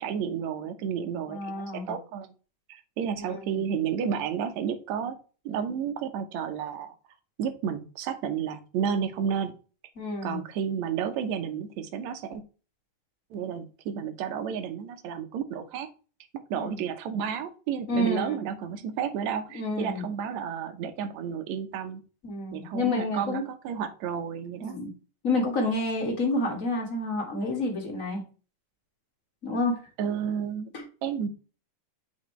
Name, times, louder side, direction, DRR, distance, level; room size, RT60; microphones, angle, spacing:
voice 1, 0.0-2.3 2.7-5.2 5.5-7.0 7.4-9.5 10.2-12.4 13.3-15.9 16.5-22.0 22.5-24.8 30.0-30.7 31.0-31.3, right 7 dB, 70° right, 7 dB, 1.9 m, -31 dB
voice 2, 1.3-1.9 3.2-3.6 10.0-10.4 16.5-16.7 17.9-18.4 19.5-20.0 22.2-23.4 24.6-24.9 25.2-28.2 29.4-29.8 30.7-30.8, left 2 dB, 30° left, 0 dB, 1.7 m, -29 dB
7.5 x 4.4 x 3.1 m, 0.36 s
omnidirectional pair, 3.7 m